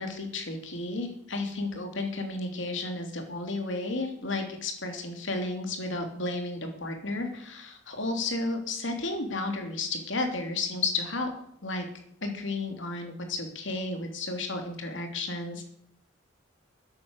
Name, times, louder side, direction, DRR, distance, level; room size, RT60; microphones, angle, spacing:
voice 1, 0.0-11.3 11.6-11.9 12.2-15.6, left 2 dB, 70° left, 4 dB, 3.0 m, -32 dB
13.0 x 9.5 x 6.7 m, 0.70 s
head